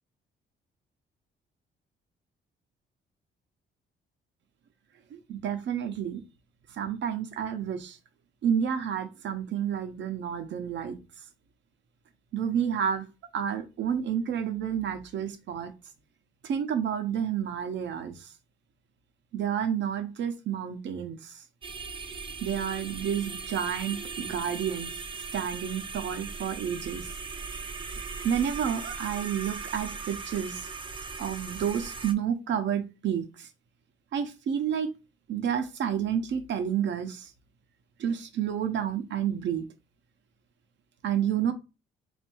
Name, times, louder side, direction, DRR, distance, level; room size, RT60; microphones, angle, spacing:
voice 1, 5.1-6.2 6.7-8.0 8.4-11.0 12.3-13.1 13.3-15.7 16.4-18.3 19.3-21.3 22.4-24.9 25.3-27.1 28.2-30.7 31.2-33.5 34.1-34.9 35.3-37.3 38.0-39.6 41.0-41.5, right 8 dB, 65° right, 0.8 m, -30 dB
sound 1, 21.6-32.1, right 4 dB, 25° right, 0.5 m, -38 dB
3.4 x 2.6 x 4.5 m
cardioid pair, 90°, 20 cm